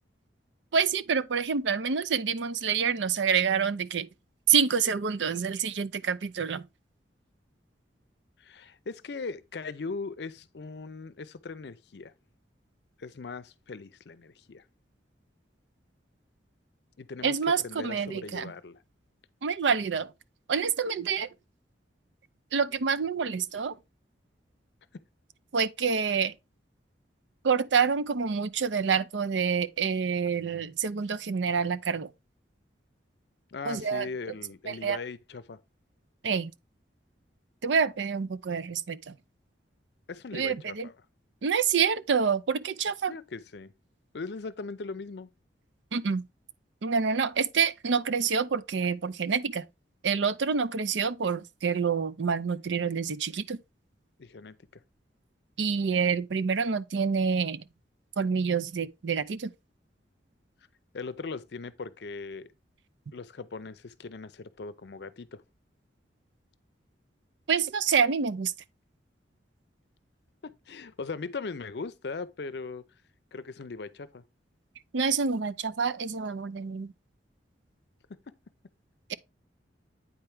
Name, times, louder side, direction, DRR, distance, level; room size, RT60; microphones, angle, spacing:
voice 1, 0.7-4.1 4.5-6.6 17.2-18.5 19.4-20.1 20.5-21.3 22.5-23.8 25.5-26.3 27.4-32.1 33.7-34.1 34.7-35.0 36.2-36.5 37.6-39.1 40.3-40.9 41.4-43.1 45.9-46.2 46.8-49.6 50.0-53.6 55.6-57.6 58.2-59.5 67.5-68.5 74.9-76.9 79.1-79.2, right 6 dB, 75° right, 0.5 m, -27 dB
voice 2, 8.4-12.1 13.0-14.6 17.0-18.8 33.5-35.6 40.1-40.9 43.1-43.7 44.1-45.3 54.2-54.8 60.9-62.5 63.1-65.4 70.4-72.8 73.3-74.2, left 4 dB, 65° left, 0.5 m, -39 dB
8.8 x 4.4 x 3.5 m
head